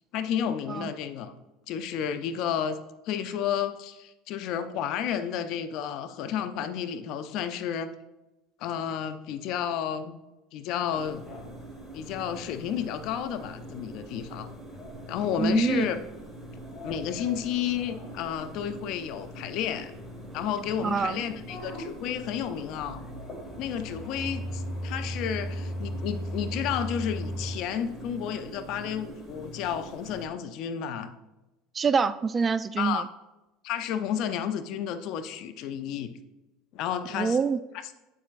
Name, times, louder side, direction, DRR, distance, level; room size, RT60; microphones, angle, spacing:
voice 1, 0.1-1.3 1.7-2.8 3.1-7.9 8.6-10.2 10.5-11.2 11.9-14.5 15.1-16.0 16.8-19.9 20.3-23.0 23.6-31.1 32.8-33.0 33.6-36.1 36.7-37.4, left 9 dB, 60° left, 10 dB, 0.6 m, -31 dB
sound 1, 10.9-30.3, right 1 dB, ahead, 1.9 m, -44 dB
sound 2, 11.1-27.6, equal, 35° left, 2.2 m, -40 dB
voice 2, 15.4-15.8 20.8-21.2 31.7-33.1 37.2-37.6, right 5 dB, 25° right, 14 dB, 0.4 m, -25 dB
8.2 x 7.3 x 2.5 m, 1.0 s
hypercardioid pair, 80°, 0 cm